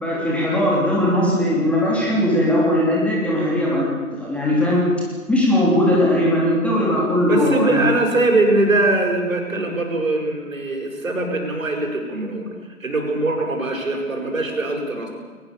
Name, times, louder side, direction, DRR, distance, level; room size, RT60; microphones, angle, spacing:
voice 1, 0.0-4.8 5.3-7.8, left 1 dB, 5° left, -4 dB, 3.3 m, -19 dB
voice 2, 7.3-12.5 12.8-15.1, right 2 dB, 70° right, 2 dB, 7.2 m, -22 dB
21.5 x 20.5 x 7.1 m, 1.5 s
figure-of-eight pair, 140°, 42 cm